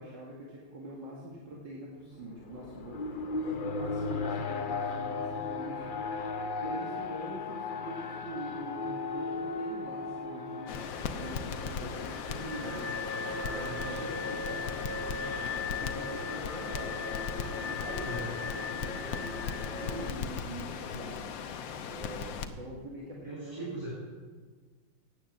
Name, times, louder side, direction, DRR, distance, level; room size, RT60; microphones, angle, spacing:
voice 1, 0.0-12.9 13.4-17.0 17.5-23.9, right 1 dB, 70° right, -4 dB, 2.8 m, -44 dB
Alarm, 2.2-20.1, left 4 dB, 50° left, 0.6 m, -37 dB
Crackle, 10.7-22.5, left 6 dB, 80° left, 1.6 m, -38 dB
voice 2, 18.0-18.4 23.2-23.9, equal, 15° right, -4 dB, 3.3 m, -39 dB
17.0 x 9.4 x 7.4 m, 1.5 s
omnidirectional pair, 2.1 m